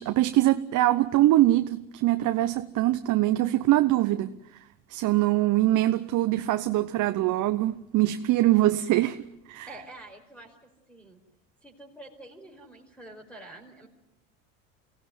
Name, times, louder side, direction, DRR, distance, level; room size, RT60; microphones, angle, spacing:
voice 1, 0.0-4.3 4.9-9.2 9.5-9.7, right 15 dB, 55° right, 1.0 m, -23 dB
voice 2, 9.7-10.6 10.9-11.2 11.6-13.9, right 1 dB, 5° left, 5.0 m, -47 dB
24.5 x 17.0 x 9.5 m
hypercardioid pair, 85°, 38 cm